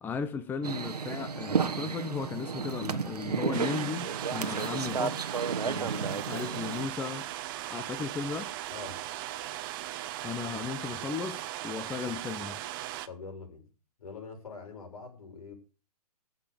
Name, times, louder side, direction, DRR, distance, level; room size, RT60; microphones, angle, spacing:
voice 1, 0.0-5.3 5.6-7.3 7.7-8.5 10.2-12.6, left 5 dB, 10° left, 0.8 m, -36 dB
sound 1, 0.6-6.9, right 5 dB, 80° right, 1.3 m, -32 dB
sound 2, 3.5-13.1, right 14 dB, 35° right, 1.0 m, -38 dB
voice 2, 8.7-9.0 13.1-13.7 14.0-15.5, left 4 dB, 65° left, 6.6 m, -44 dB
15.0 x 6.5 x 6.9 m
figure-of-eight pair, 130°, 20 cm